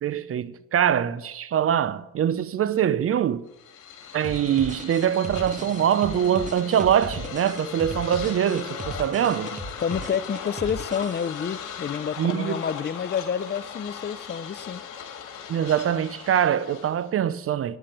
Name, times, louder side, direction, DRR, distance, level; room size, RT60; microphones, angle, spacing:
voice 1, 0.0-3.4 4.1-9.6 12.2-12.6 15.5-17.8, right 9 dB, 45° right, 0.6 m, -23 dB
sound 1, 3.5-17.1, left 7 dB, 65° left, 2.2 m, -38 dB
sound 2, 4.2-11.6, right 2 dB, 25° right, 1.3 m, -38 dB
voice 2, 9.8-14.8, left 7 dB, 30° left, 0.5 m, -29 dB
9.5 x 7.5 x 9.1 m
supercardioid pair, 85°, 32 cm